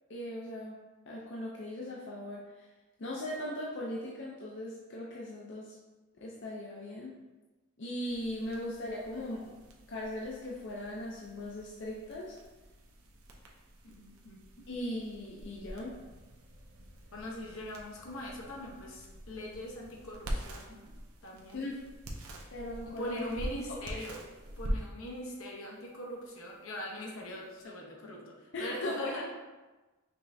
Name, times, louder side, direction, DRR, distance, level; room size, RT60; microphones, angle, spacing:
voice 1, 0.1-0.8 1.1-2.6 3.0-5.8 6.2-7.1 7.8-9.6 9.9-12.4 14.7-15.9 21.5-21.8 22.5-23.2 23.7-24.0 28.5-29.1, left 1 dB, 55° left, -4 dB, 0.5 m, -39 dB
sound 1, 8.1-27.7, equal, 80° right, 0.7 m, -45 dB
voice 2, 13.8-14.6 17.1-20.8 21.2-21.7 22.8-24.3 24.6-29.3, left 1 dB, 75° left, -1 dB, 0.9 m, -42 dB
5.3 x 3.3 x 2.7 m, 1.2 s
head